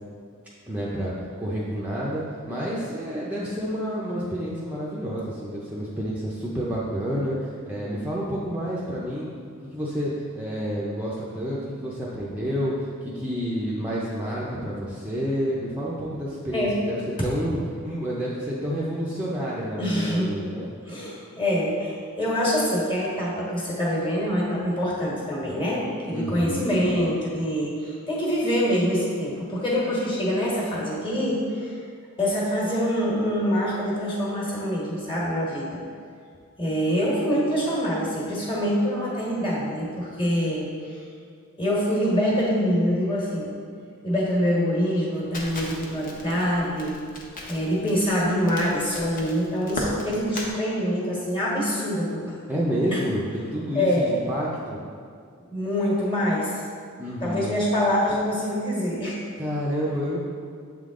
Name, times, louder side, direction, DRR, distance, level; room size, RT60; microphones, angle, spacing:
voice 1, 0.7-9.3 9.7-17.0 17.2-17.6 17.8-20.6 26.1-26.7 52.5-54.8 57.0-57.5 59.4-60.2, equal, 5° right, -7 dB, 0.6 m, -29 dB
voice 2, 19.8-20.3 20.9-31.8 32.2-35.8 36.6-41.0 41.6-43.6 44.0-47.1 47.5-52.3 52.9-53.0 53.7-54.2 55.5-56.6 57.2-59.2, equal, 25° left, -5 dB, 1.5 m, -25 dB
Crackle, 45.3-50.5, left 1 dB, 40° left, 0.9 m, -36 dB
7.4 x 3.7 x 3.7 m, 2.2 s
head